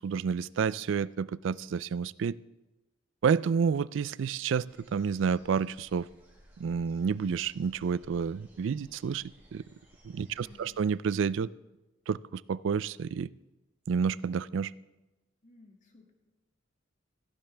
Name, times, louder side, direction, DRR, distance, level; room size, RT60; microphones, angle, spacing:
voice 1, 0.0-2.4 3.2-4.7 4.9-6.1 6.6-9.2 9.5-9.6 10.0-11.5 12.1-13.3 13.9-14.7, right 6 dB, 70° right, 20 dB, 0.3 m, -29 dB
sound 1, 4.7-10.9, equal, 10° right, 5.7 m, -60 dB
voice 2, 10.3-10.7 15.4-16.1, left 2 dB, 40° left, 2 dB, 2.1 m, -57 dB
17.0 x 15.0 x 3.4 m, 1.1 s
head